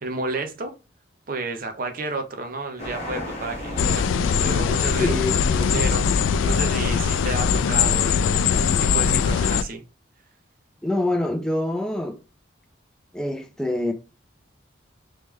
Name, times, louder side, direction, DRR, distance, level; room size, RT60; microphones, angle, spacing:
voice 1, 0.0-0.7 1.3-5.1 5.5-9.8, right 3 dB, 45° right, 0.6 m, -31 dB
sound 1, 2.8-8.6, left 1 dB, 35° left, 1.2 m, -37 dB
sound 2, 3.8-9.6, left 6 dB, 80° left, 0.3 m, -21 dB
voice 2, 5.0-5.7 10.8-12.2 13.1-13.9, left 1 dB, 5° left, 0.4 m, -25 dB
3.5 x 3.1 x 3.0 m
head